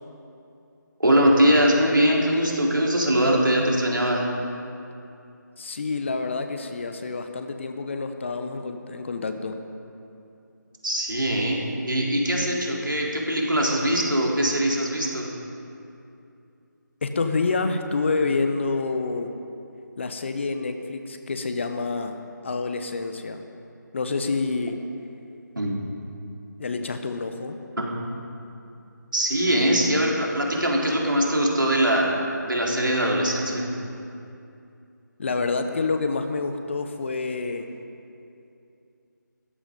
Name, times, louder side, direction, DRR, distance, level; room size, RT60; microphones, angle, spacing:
voice 1, 1.0-4.2 10.8-15.3 25.6-25.7 27.8-27.9 29.1-32.2 32.5-33.7, equal, 85° right, -2 dB, 3.8 m, -22 dB
voice 2, 5.6-9.6 17.0-19.3 20.0-23.4 23.9-24.8 26.6-27.6 35.2-37.7, left 3 dB, 40° left, 7 dB, 1.0 m, -28 dB
16.5 x 14.0 x 5.3 m, 2.6 s
figure-of-eight pair, 160°, 11 cm